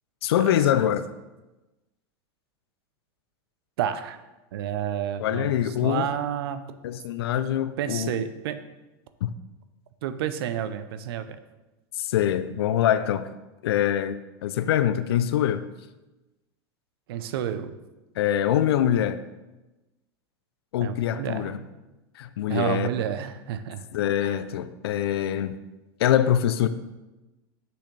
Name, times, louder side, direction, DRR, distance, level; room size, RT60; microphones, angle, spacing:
voice 1, 0.2-1.0 5.2-6.1 6.8-8.1 9.2-9.3 11.9-13.3 13.6-15.7 18.2-19.2 20.7-21.6 22.2-22.9 23.9-25.6 26.0-26.7, left 10 dB, 85° left, 0.4 m, -24 dB
voice 2, 3.8-4.2 4.5-6.6 7.8-8.6 10.0-11.4 17.1-17.8 20.8-21.7 22.5-23.9 24.2-24.4, right 10 dB, 75° right, 0.6 m, -30 dB
6.5 x 6.1 x 3.2 m
hypercardioid pair, 100°, 13 cm